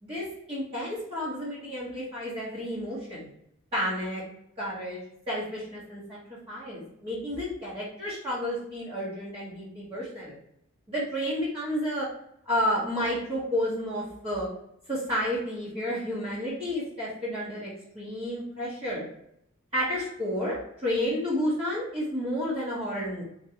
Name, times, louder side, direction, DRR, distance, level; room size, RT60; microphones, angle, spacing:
voice 1, 0.0-3.3 3.7-4.2 4.6-5.0 5.3-6.2 6.5-10.4 10.9-12.1 12.4-14.5 14.9-17.7 17.9-19.1 19.7-23.2, equal, 25° right, -10 dB, 1.4 m, -31 dB
3.7 x 3.3 x 2.9 m, 0.75 s
head